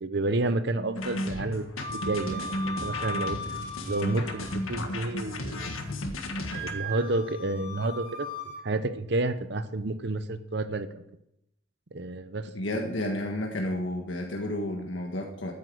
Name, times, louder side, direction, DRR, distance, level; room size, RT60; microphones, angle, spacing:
voice 1, 0.0-1.7 1.9-3.4 3.9-5.8 6.5-11.0 11.9-12.5, right 2 dB, 55° right, 11 dB, 0.8 m, -30 dB
sound 1, 1.0-6.7, left 1 dB, 90° left, 1.7 m, -34 dB
Wind instrument woodwind instrument, 1.8-4.8 5.2-5.9 6.4-8.6, equal, 50° left, 3.9 m, -38 dB
voice 2, 12.5-15.5, left 1 dB, 70° left, 2 dB, 1.6 m, -31 dB
12.0 x 9.5 x 6.3 m, 0.82 s
head